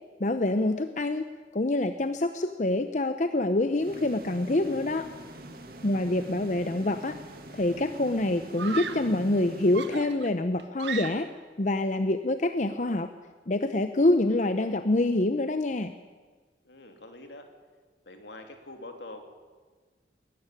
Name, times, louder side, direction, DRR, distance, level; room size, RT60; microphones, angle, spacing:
voice 1, 0.2-1.3 1.5-5.1 5.8-7.1 7.5-11.3 11.6-13.1 13.5-15.9, left 2 dB, 40° left, 9 dB, 0.7 m, -26 dB
sound 1, 3.8-10.6, right 1 dB, 55° right, 2.4 m, -45 dB
voice 2, 5.9-6.4 16.6-17.5 18.1-19.2, left 2 dB, 75° left, 4 dB, 2.9 m, -45 dB
Screaming, 7.0-7.5 8.6-9.2 9.7-11.5, right 6 dB, 80° right, 1.3 m, -37 dB
21.0 x 13.5 x 9.9 m, 1.4 s
head